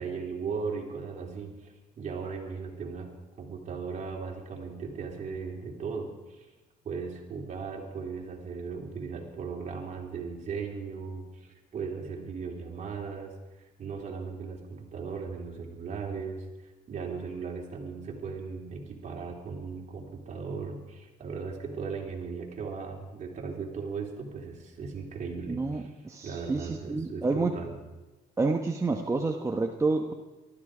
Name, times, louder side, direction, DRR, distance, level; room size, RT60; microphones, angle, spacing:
voice 1, 0.0-3.1 3.4-6.5 6.8-25.9 26.2-27.7, right 5 dB, 45° right, 0 dB, 3.8 m, -37 dB
voice 2, 25.5-27.5 28.4-30.1, right 3 dB, 15° right, 3 dB, 1.1 m, -29 dB
19.0 x 13.5 x 5.0 m, 1.1 s
cardioid pair, 110°, 17 cm